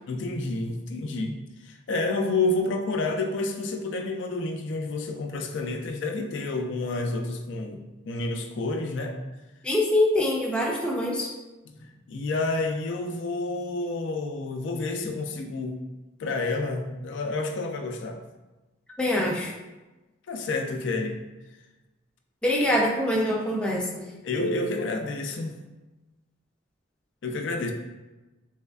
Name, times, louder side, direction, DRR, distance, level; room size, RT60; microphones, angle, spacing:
voice 1, 0.1-7.8 8.0-9.2 11.7-15.8 16.2-18.2 20.3-21.2 24.2-25.5 27.2-27.7, left 2 dB, 70° left, 3 dB, 0.4 m, -29 dB
voice 2, 9.6-11.3 19.0-19.5 22.4-23.9, left 1 dB, 5° left, -4 dB, 0.4 m, -24 dB
3.4 x 3.1 x 2.3 m, 1.1 s
head